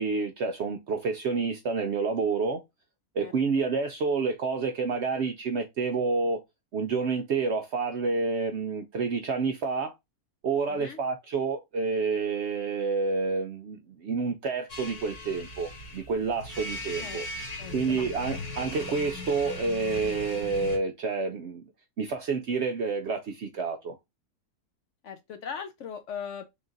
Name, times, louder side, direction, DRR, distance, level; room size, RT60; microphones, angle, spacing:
voice 1, 0.0-2.6 3.1-6.4 6.7-9.9 10.4-17.3 17.7-21.6 22.0-24.0, right 4 dB, 65° right, 0.7 m, -29 dB
voice 2, 10.7-11.0 17.0-17.2 17.6-18.0 25.0-26.5, left 7 dB, 65° left, 0.8 m, -39 dB
sound 1, 14.7-20.8, left 2 dB, 30° left, 0.8 m, -39 dB
3.6 x 2.4 x 3.9 m
omnidirectional pair, 1.6 m